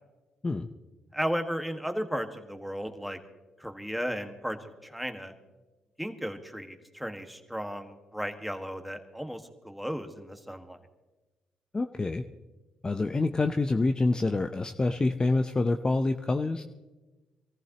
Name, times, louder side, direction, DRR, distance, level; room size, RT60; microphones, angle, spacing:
voice 1, 1.1-3.2 3.6-5.3 6.0-10.8, equal, ahead, 6 dB, 1.6 m, -35 dB
voice 2, 11.7-12.2 12.8-16.6, left 2 dB, 30° left, 6 dB, 0.7 m, -27 dB
23.0 x 14.5 x 3.0 m, 1.2 s
supercardioid pair, 50°, 3 cm